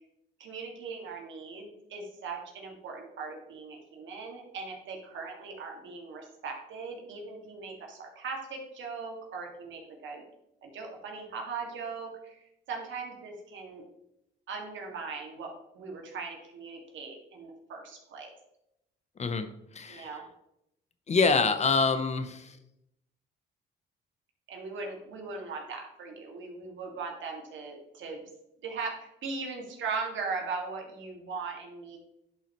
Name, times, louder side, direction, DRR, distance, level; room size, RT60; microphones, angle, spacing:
voice 1, 0.4-10.2 10.6-13.8 14.5-18.3 19.9-20.2 24.5-28.2 28.6-32.0, right 4 dB, 70° right, 1 dB, 2.0 m, -39 dB
voice 2, 19.7-20.1 21.1-22.6, left 4 dB, 35° left, 10 dB, 0.7 m, -26 dB
10.5 x 5.6 x 3.0 m, 0.82 s
cardioid pair, 90°, 20 cm